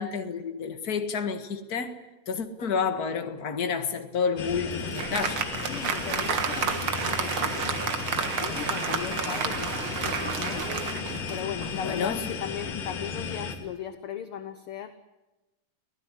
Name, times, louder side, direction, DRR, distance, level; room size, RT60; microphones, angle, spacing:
voice 1, 0.0-2.0 2.3-5.5 11.8-12.3, left 6 dB, 35° left, 8 dB, 1.8 m, -30 dB
Applause, 4.3-11.9, right 7 dB, 50° right, 2.0 m, -31 dB
sound 1, 4.4-13.6, left 5 dB, 80° left, 4.0 m, -34 dB
voice 2, 5.7-8.0 8.3-10.7 11.3-14.9, left 9 dB, 60° left, 10 dB, 1.5 m, -38 dB
25.5 x 17.0 x 10.0 m, 1.1 s
omnidirectional pair, 3.6 m